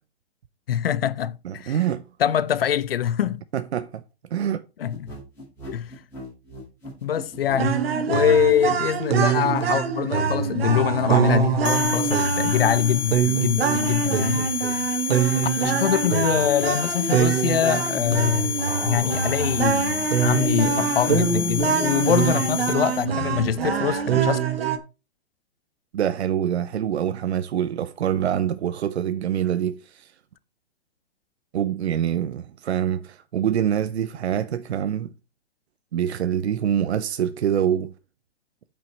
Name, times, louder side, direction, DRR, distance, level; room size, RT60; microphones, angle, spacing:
voice 1, 0.7-1.8 2.2-3.4 4.8-5.1 5.7-5.9 7.0-14.8 15.6-18.6 18.8-24.4, left 9 dB, 60° left, 0.6 m, -24 dB
voice 2, 1.4-2.0 3.5-4.0 4.3-4.6 25.9-30.1 31.5-35.1 35.9-37.9, right 9 dB, 80° right, 0.8 m, -25 dB
sound 1, 4.9-7.7, equal, 5° left, 5.3 m, -39 dB
sound 2, 7.6-24.8, right 7 dB, 65° right, 1.5 m, -24 dB
sound 3, 11.6-23.1, left 9 dB, 90° left, 1.4 m, -30 dB
8.9 x 5.5 x 4.5 m
hypercardioid pair, 175°, 33 cm